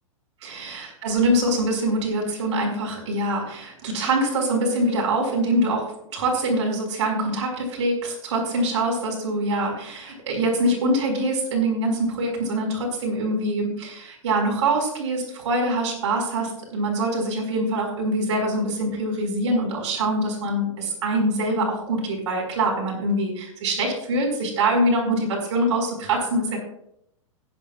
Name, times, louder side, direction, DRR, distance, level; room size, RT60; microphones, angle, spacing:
voice 1, 0.4-26.6, right 1 dB, 60° right, 0 dB, 5.0 m, -24 dB
16.5 x 10.5 x 2.4 m, 0.73 s
figure-of-eight pair, 105°, 17 cm